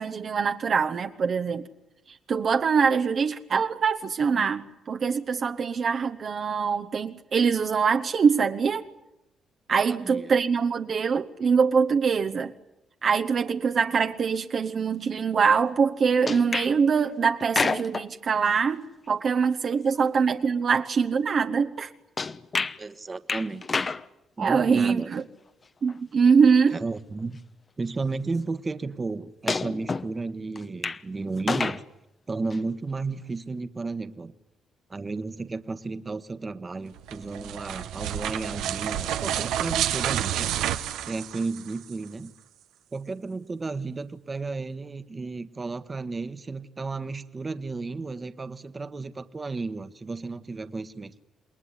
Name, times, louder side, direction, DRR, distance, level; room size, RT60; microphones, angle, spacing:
voice 1, 0.0-1.7 2.3-8.9 9.7-12.5 13.0-21.9 24.4-25.2 25.8-26.8, right 6 dB, 50° right, 7 dB, 1.1 m, -23 dB
voice 2, 9.9-10.3 22.8-23.6 24.4-25.1 26.7-27.4 27.8-31.8 32.3-34.3 34.9-40.5 41.0-42.3 42.9-51.2, right 3 dB, 30° right, 11 dB, 1.4 m, -33 dB
sound 1, 16.3-16.7 17.4-18.1 22.2-22.8 23.3-24.0 25.9-26.0 27.2-27.3 29.5-30.1 30.6-31.0 31.4-31.8 32.5-32.6, left 4 dB, 35° left, 1.0 m, -28 dB
sound 2, 37.0-41.9, right 11 dB, 85° right, 1.2 m, -29 dB
28.0 x 21.0 x 9.9 m, 0.88 s
cardioid pair, 90°, 0 cm